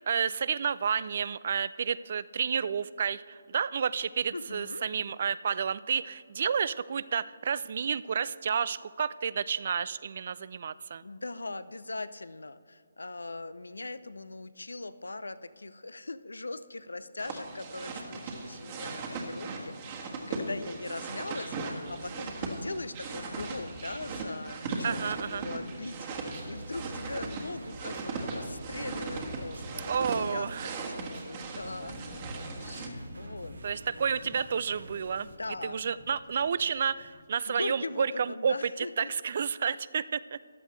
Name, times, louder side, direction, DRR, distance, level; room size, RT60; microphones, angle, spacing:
voice 1, 0.0-11.0 24.8-25.4 29.9-30.7 33.6-35.3 35.6-40.4, right 6 dB, 50° right, 18 dB, 0.3 m, -30 dB
voice 2, 4.3-4.8 11.0-32.2 32.6-33.5 35.2-35.9 37.5-39.1, left 2 dB, 85° left, 14 dB, 0.6 m, -40 dB
sound 1, 17.2-32.9, right 3 dB, 35° right, 1.6 m, -38 dB
sound 2, 26.3-35.4, right 2 dB, 70° right, 0.9 m, -49 dB
sound 3, 31.6-37.3, left 3 dB, 40° left, 0.9 m, -50 dB
14.5 x 11.0 x 3.2 m, 2.2 s
figure-of-eight pair, 150°, 0 cm